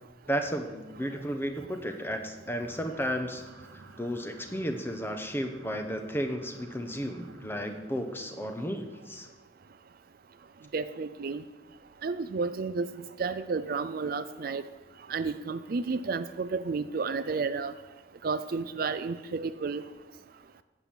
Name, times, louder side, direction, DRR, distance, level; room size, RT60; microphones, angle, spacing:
voice 1, 0.3-3.4 4.0-9.3, equal, 10° left, 6 dB, 0.9 m, -33 dB
sound 1, 2.7-7.7, right 2 dB, 80° right, 1.1 m, -51 dB
voice 2, 10.7-11.4 12.0-12.9 13.2-14.6 15.1-17.7 18.2-19.8, right 4 dB, 50° right, 12 dB, 0.4 m, -31 dB
10.5 x 7.5 x 7.1 m, 1.2 s
head